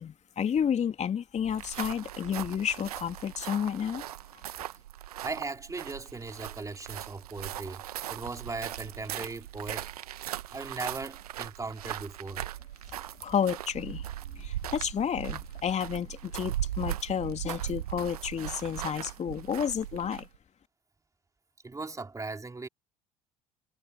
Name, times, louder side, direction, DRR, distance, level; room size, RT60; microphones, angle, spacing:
voice 1, 0.0-4.0 13.2-14.1 14.3-20.3, left 8 dB, 35° left, 3.3 m, -31 dB
sound 1, 1.5-20.4, right 12 dB, 75° right, 1.3 m, -39 dB
voice 2, 5.2-9.9 10.5-12.4 21.6-22.7, right 3 dB, 15° right, 3.4 m, -38 dB
figure-of-eight pair, 65°, 20 cm